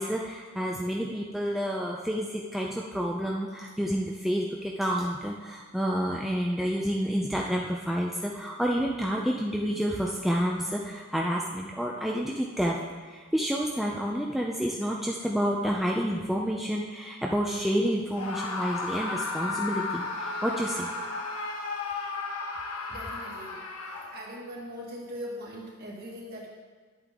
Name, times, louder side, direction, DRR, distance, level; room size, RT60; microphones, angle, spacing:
voice 1, 0.0-12.8 13.0-20.9, equal, ahead, -2 dB, 0.5 m, -29 dB
Screaming, 18.1-24.4, left 3 dB, 85° left, 1.1 m, -34 dB
voice 2, 22.9-23.6 24.1-26.5, equal, 45° right, -3 dB, 1.9 m, -40 dB
10.5 x 8.3 x 3.6 m, 1.5 s
head